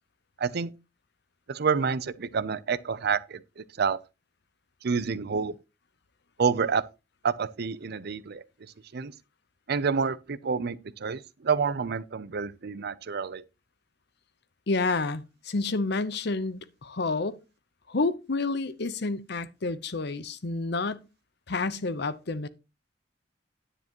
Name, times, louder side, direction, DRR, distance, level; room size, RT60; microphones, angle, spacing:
voice 1, 0.4-0.7 1.5-4.0 4.8-5.6 6.4-6.8 7.2-8.4 8.9-9.1 9.7-13.4, right 5 dB, 60° right, 0.6 m, -28 dB
voice 2, 14.7-17.4 17.9-21.0 21.5-22.5, left 3 dB, 65° left, 0.8 m, -29 dB
10.0 x 9.5 x 3.0 m
head